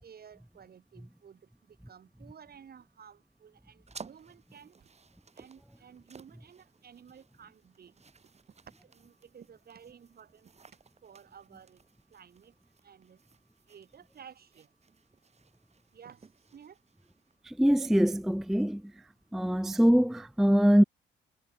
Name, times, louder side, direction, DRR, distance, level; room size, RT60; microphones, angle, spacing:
voice 1, 0.0-1.4 1.9-4.7 5.4-7.9 8.9-10.5 11.0-11.8 12.1-12.5 12.8-13.2 13.7-14.7 15.9-16.2 16.5-16.8, right 7 dB, 50° right, 4.3 m, -53 dB
sound 1, 3.9-17.3, right 5 dB, 35° right, 2.9 m, -56 dB
voice 2, 17.5-18.8 19.3-20.8, equal, ahead, 0.4 m, -23 dB
cardioid pair, 90°, 20 cm